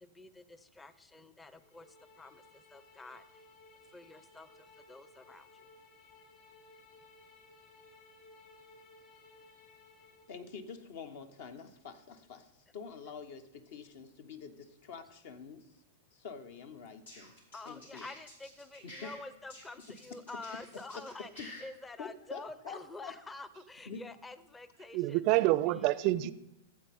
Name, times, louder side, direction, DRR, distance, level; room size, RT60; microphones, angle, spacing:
voice 1, 0.0-1.9 2.2-3.2 3.9-4.5 4.9-5.5 17.5-25.5, left 2 dB, 15° left, 0.6 m, -48 dB
sound 1, 1.6-10.4, left 3 dB, 35° left, 3.2 m, -59 dB
voice 2, 10.3-15.7 16.1-17.3 17.6-18.1 18.8-19.1 20.1-20.2 20.9-21.0 21.4-21.6 22.0-23.1 23.9-24.1 25.3-25.5 25.7-25.8, left 5 dB, 60° left, 1.0 m, -47 dB
sound 2, 16.9-19.2 19.5-21.6, left 1 dB, 80° left, 3.1 m, -51 dB
voice 3, 24.9-26.3, right 17 dB, 45° right, 0.4 m, -27 dB
13.0 x 7.7 x 3.6 m
hypercardioid pair, 105°, 0 cm